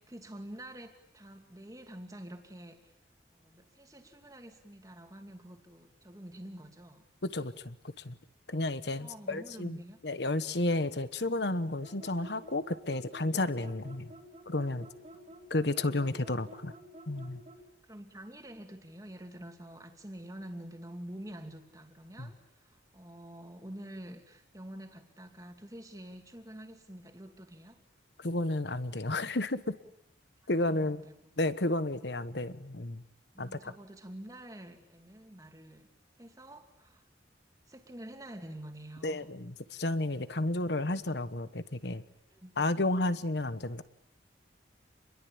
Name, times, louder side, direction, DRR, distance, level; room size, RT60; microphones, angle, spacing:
voice 1, 0.0-2.9 3.3-7.0 8.9-10.0 15.1-15.3 17.8-27.8 30.6-31.4 31.7-31.9 33.3-35.9 36.2-37.0 37.7-39.3 42.3-42.6, right 1 dB, 20° right, 5 dB, 2.6 m, -47 dB
voice 2, 7.2-8.2 8.5-9.8 10.0-14.1 14.5-14.9 15.5-16.7 17.1-17.4 22.2-22.3 28.2-29.8 30.5-31.0 31.4-33.0 33.4-33.7 39.0-42.0 42.6-43.8, left 2 dB, 60° left, 13 dB, 1.3 m, -32 dB
sound 1, 11.8-17.7, right 1 dB, 35° right, 2.9 m, -51 dB
28.0 x 22.0 x 8.7 m, 0.75 s
head